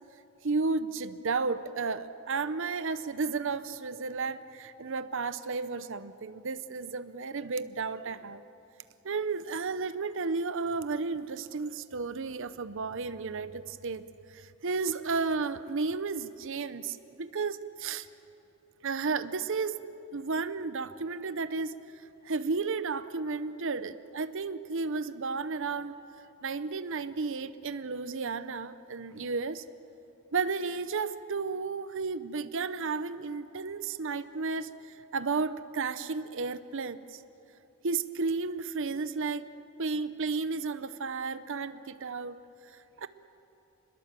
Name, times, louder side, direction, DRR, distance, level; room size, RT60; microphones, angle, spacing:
voice 1, 0.4-8.4 9.0-18.1 18.8-19.8 20.1-26.0 26.4-29.6 30.3-37.2 37.8-39.5 39.8-43.1, right 4 dB, 60° right, 13 dB, 0.7 m, -33 dB
29.0 x 21.5 x 7.5 m, 3.0 s
head